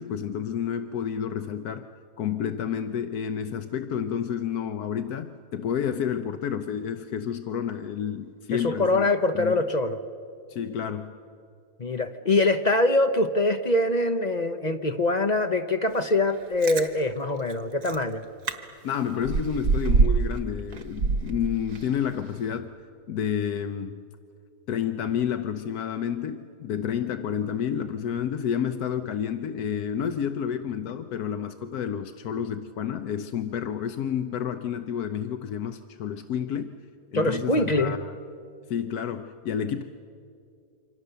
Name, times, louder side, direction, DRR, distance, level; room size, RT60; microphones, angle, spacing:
voice 1, 0.0-1.9 2.2-9.1 9.3-9.6 10.5-11.1 18.8-22.7 23.1-24.1 24.7-36.7 37.1-38.2 38.7-39.8, left 8 dB, 80° left, 9 dB, 1.3 m, -30 dB
voice 2, 8.6-10.0 11.8-18.2 37.1-37.9, left 2 dB, 35° left, 7 dB, 0.8 m, -24 dB
Chewing mastication, 16.4-16.9 17.5-17.6 17.8-18.0 18.5-18.6 18.9-20.4 20.7-22.0 22.4-22.5, right 4 dB, 90° right, 1.8 m, -24 dB
27.5 x 25.0 x 6.8 m, 2.4 s
omnidirectional pair, 1.6 m